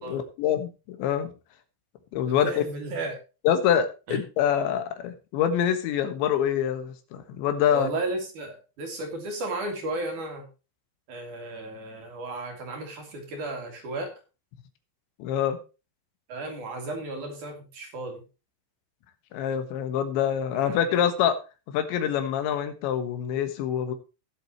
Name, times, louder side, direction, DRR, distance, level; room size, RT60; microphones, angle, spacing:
voice 1, 0.1-1.3 2.1-2.5 3.5-7.9 15.2-15.6 19.3-21.4 21.7-23.9, left 9 dB, 75° left, 9 dB, 3.6 m, -25 dB
voice 2, 2.4-3.2 4.1-4.2 7.7-10.5 11.1-14.1 16.3-18.2 20.5-21.1, right 2 dB, 45° right, 3 dB, 4.0 m, -34 dB
19.5 x 7.7 x 3.0 m, 0.31 s
omnidirectional pair, 5.3 m